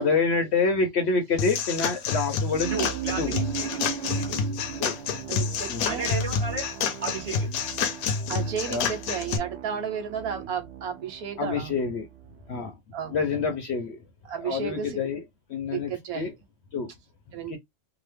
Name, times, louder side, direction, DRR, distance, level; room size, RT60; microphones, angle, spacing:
voice 1, 0.0-2.7 3.2-3.4 4.8-5.0 5.7-5.9 8.7-8.9 11.4-12.1 12.5-12.7 13.1-14.0 14.4-15.2 15.5-16.3 16.7-16.9 17.5-17.6, left 4 dB, 60° left, 0.8 m, -27 dB
sound 1, 1.4-9.4, left 6 dB, 80° left, 1.1 m, -29 dB
sound 2, 2.5-12.5, right 9 dB, 65° right, 0.7 m, -37 dB
voice 2, 2.7-4.3 5.9-6.7 7.0-7.5, right 4 dB, 30° right, 1.2 m, -34 dB
voice 3, 5.3-6.1 8.3-11.8 12.9-13.4 14.2-15.0 15.7-16.3 17.3-17.6, right 8 dB, 85° right, 1.3 m, -33 dB
2.9 x 2.1 x 3.2 m
omnidirectional pair, 1.5 m